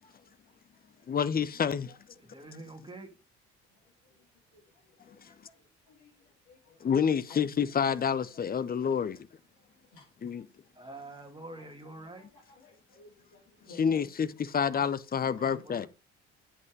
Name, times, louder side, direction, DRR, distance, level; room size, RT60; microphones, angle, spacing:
voice 1, 0.0-1.1 1.9-2.5 3.7-7.0 7.3-7.5 8.3-9.2 9.5-11.0 11.3-14.2 14.6-14.9 15.4-15.9, left 4 dB, 65° left, 2.9 m, -57 dB
voice 2, 1.1-1.9 6.8-9.2 10.2-10.4 13.8-15.9, left 7 dB, 25° left, 0.7 m, -28 dB
voice 3, 2.2-3.2 10.7-12.3 15.6-15.9, right 2 dB, 15° right, 2.5 m, -46 dB
8.1 x 5.6 x 5.3 m
figure-of-eight pair, 50°, 35 cm